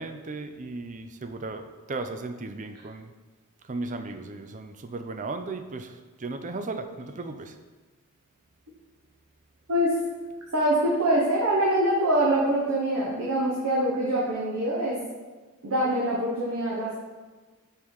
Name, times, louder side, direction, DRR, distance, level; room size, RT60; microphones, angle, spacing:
voice 1, 0.0-3.1 3.6-7.6, right 3 dB, 35° right, 8 dB, 0.5 m, -36 dB
voice 2, 10.5-15.0 15.6-17.0, right 1 dB, 80° right, -5 dB, 1.2 m, -24 dB
5.5 x 4.6 x 4.9 m, 1.3 s
head